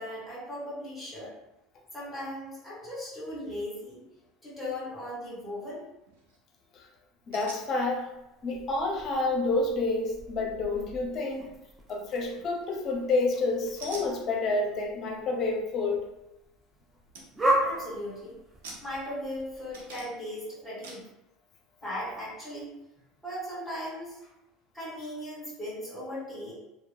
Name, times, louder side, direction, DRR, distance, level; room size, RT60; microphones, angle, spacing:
voice 1, 0.0-1.3 1.9-4.0 4.4-5.8 17.6-18.3 18.8-21.0 21.8-22.7 23.2-24.3 24.7-26.5, left 1 dB, ahead, -8 dB, 1.5 m, -37 dB
sound 1, 6.0-6.4 7.3-7.7 12.4-12.8 13.8-14.1 16.6-16.7 17.1-17.3 17.6-18.0 18.6-19.4 19.7-20.3 20.8-21.1, right 3 dB, 80° right, 0.5 m, -45 dB
voice 2, 7.3-8.1 8.4-11.5 11.9-16.0, left 3 dB, 45° left, 2 dB, 0.5 m, -29 dB
sound 2, 7.6-20.0, right 1 dB, 20° right, 0.5 m, -37 dB
2.7 x 2.1 x 2.2 m, 0.93 s
hypercardioid pair, 80°, 0 cm